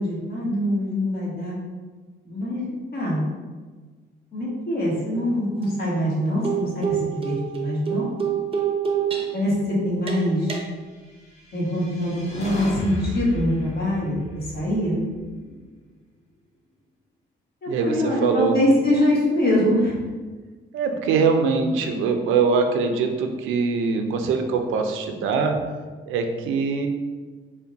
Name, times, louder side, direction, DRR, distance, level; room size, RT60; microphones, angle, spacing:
voice 1, 0.0-1.6 2.2-3.2 4.3-8.1 9.3-10.6 11.5-15.0 17.6-20.0, left 1 dB, 50° left, -4 dB, 1.3 m, -24 dB
sound 1, 5.1-5.3 5.6-5.7 6.4-9.5 10.1-10.6, right 8 dB, 30° right, 0.5 m, -27 dB
sound 2, 11.3-15.6, equal, 35° left, 0.9 m, -35 dB
voice 2, 17.7-18.5 20.7-25.5 26.1-26.9, right 5 dB, 85° right, 5 dB, 0.4 m, -22 dB
3.4 x 2.2 x 3.9 m, 1.4 s
cardioid pair, 90°, 20 cm